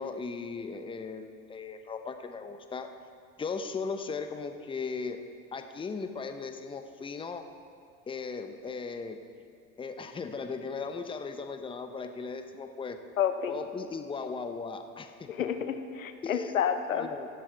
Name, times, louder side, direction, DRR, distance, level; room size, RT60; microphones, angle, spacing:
voice 1, 0.0-2.9 3.4-5.2 5.5-7.5 8.1-9.2 9.8-13.0 13.5-15.5 16.2-16.6 16.9-17.3, left 4 dB, 15° left, 7 dB, 0.7 m, -37 dB
voice 2, 13.2-13.5 15.3-17.1, left 8 dB, 85° left, 8 dB, 0.8 m, -29 dB
17.0 x 11.5 x 3.4 m, 2.4 s
hypercardioid pair, 80°, 39 cm